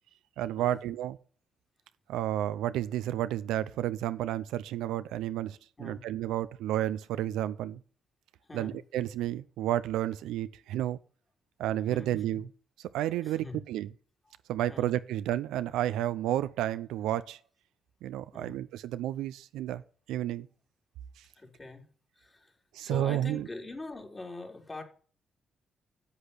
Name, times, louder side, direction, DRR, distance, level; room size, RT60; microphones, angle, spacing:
voice 1, 0.4-1.2 2.1-7.8 8.5-11.0 11.6-12.5 12.9-13.9 14.5-17.4 18.0-19.8 20.1-20.5 22.7-23.5, right 12 dB, 90° right, 0.5 m, -31 dB
voice 2, 11.9-12.4 13.2-13.6 14.3-14.4 14.7-15.0 18.3-18.6 21.4-21.9 22.2-22.5 22.8-24.8, left 2 dB, 25° left, 3.6 m, -43 dB
8.4 x 8.0 x 8.5 m
supercardioid pair, 60°, 0 cm